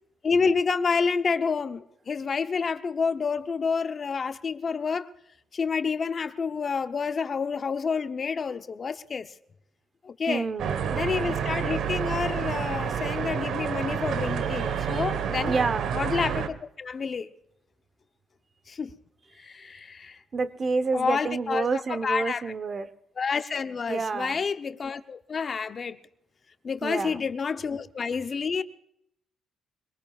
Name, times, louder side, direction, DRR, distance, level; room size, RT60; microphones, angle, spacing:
voice 1, 0.2-5.1 5.5-9.3 10.0-10.4 10.9-15.5 15.9-17.3 18.7-18.9 19.4-20.2 20.9-21.7 22.0-22.4 23.2-26.0 26.6-28.6, left 5 dB, 40° left, 0.8 m, -29 dB
voice 2, 10.3-10.9 14.5-15.1 15.5-16.0 20.3-22.9 23.9-24.4 26.8-27.2, right 4 dB, 40° right, 0.9 m, -29 dB
sound 1, 10.6-16.5, right 7 dB, 75° right, 1.2 m, -29 dB
24.5 x 19.0 x 2.4 m
cardioid pair, 90°, 0 cm